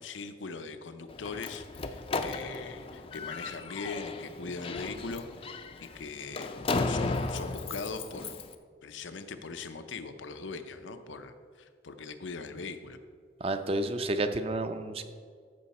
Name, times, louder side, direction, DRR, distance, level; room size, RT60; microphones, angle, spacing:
voice 1, 0.0-6.5 6.9-8.4 8.8-13.0, left 4 dB, 90° left, 9 dB, 0.7 m, -40 dB
Slam, 1.1-8.5, left 3 dB, 30° left, 0.4 m, -35 dB
voice 2, 13.4-15.0, right 2 dB, 30° right, 9 dB, 0.5 m, -30 dB
14.0 x 5.7 x 4.2 m, 2.1 s
head